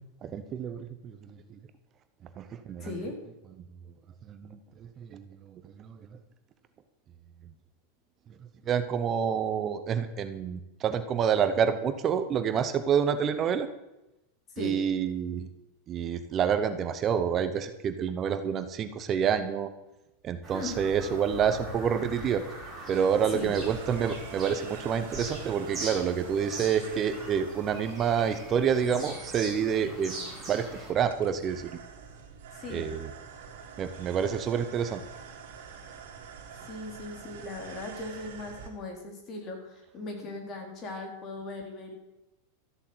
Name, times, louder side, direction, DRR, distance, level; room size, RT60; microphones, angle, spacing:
voice 1, 0.2-1.6 2.4-2.9 3.6-3.7 4.3-6.1 8.7-13.7 14.6-15.5 15.9-19.7 20.2-22.4 22.9-30.2 30.5-31.8 32.7-33.1 33.8-35.0, right 7 dB, 25° right, 11 dB, 0.8 m, -28 dB
voice 2, 2.8-3.2 14.6-14.8 20.5-20.8 23.3-23.5 32.5-32.9 36.6-41.9, left 2 dB, 30° left, 3 dB, 3.4 m, -38 dB
Bird vocalization bird call bird song, 20.4-30.9, right 1 dB, 10° right, 4.9 m, -41 dB
sound 1, 22.9-38.7, right 6 dB, 65° right, 3.7 m, -47 dB
13.5 x 8.1 x 7.8 m, 0.95 s
supercardioid pair, 155°, 0 cm